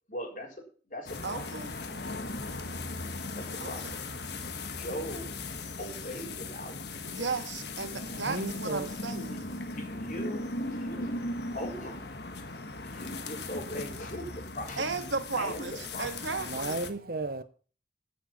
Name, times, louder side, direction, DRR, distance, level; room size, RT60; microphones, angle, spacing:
voice 1, 0.1-1.6 3.3-3.9 4.7-5.3 5.8-7.3 9.3-11.1 11.5-12.1 12.5-15.1 15.4-16.1, equal, 45° left, 4.3 m, -40 dB
sound 1, 1.1-16.9, left 2 dB, 60° left, 1.5 m, -38 dB
voice 2, 1.2-1.7 3.6-4.0 7.0-9.4 14.8-15.7 16.0-16.8, right 4 dB, 85° right, 1.8 m, -35 dB
voice 3, 8.1-8.9 16.4-17.4, right 3 dB, 50° right, 0.8 m, -34 dB
14.5 x 7.4 x 5.8 m
head